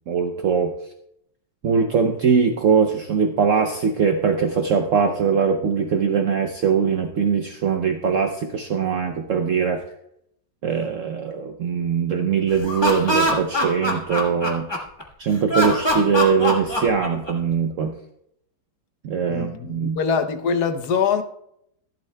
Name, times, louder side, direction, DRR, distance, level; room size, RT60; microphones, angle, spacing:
voice 1, 0.1-0.7 1.6-9.8 10.6-14.7 15.2-17.9 19.0-20.0, right 6 dB, 70° right, 0.7 m, -21 dB
Laughter, 12.5-15.0 15.5-17.5, equal, 15° left, 1.2 m, -23 dB
voice 2, 19.3-21.2, left 6 dB, 65° left, 1.2 m, -23 dB
14.5 x 11.5 x 2.2 m
omnidirectional pair, 2.0 m